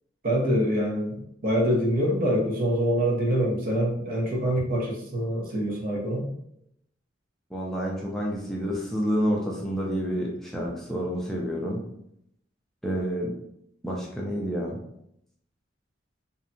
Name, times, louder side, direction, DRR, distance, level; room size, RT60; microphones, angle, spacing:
voice 1, 0.2-6.3, equal, 50° right, -2 dB, 0.7 m, -25 dB
voice 2, 7.5-11.8 12.8-13.3 13.8-14.8, equal, ahead, -4 dB, 0.3 m, -29 dB
2.7 x 2.2 x 2.6 m, 0.75 s
head